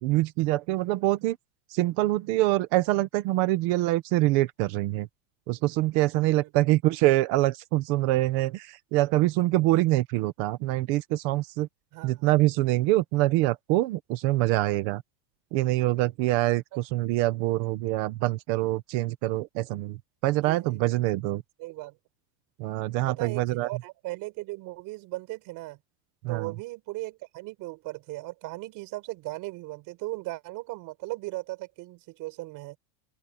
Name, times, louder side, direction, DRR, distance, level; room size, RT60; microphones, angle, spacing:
voice 1, 0.0-1.4 1.7-5.1 5.5-11.7 12.0-15.0 15.5-20.0 20.2-21.4 22.6-23.7 26.2-26.5, right 17 dB, 25° right, 0.4 m, -25 dB
voice 2, 11.9-12.3 20.4-21.0 21.6-22.0 23.2-25.8 26.3-32.8, right 20 dB, 40° right, 5.7 m, -37 dB
open air
supercardioid pair, 170°, 49 cm